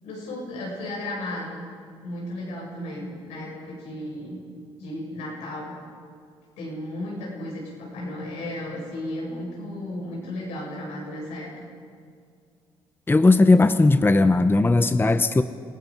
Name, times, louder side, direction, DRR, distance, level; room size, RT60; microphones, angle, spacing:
voice 1, 0.0-1.7 2.0-4.4 4.8-5.7 6.6-11.5, left 1 dB, 90° left, -3 dB, 7.6 m, -34 dB
voice 2, 13.1-15.4, left 2 dB, 20° left, 11 dB, 0.8 m, -17 dB
27.5 x 17.5 x 5.4 m, 2.2 s
supercardioid pair, 65°, 11 cm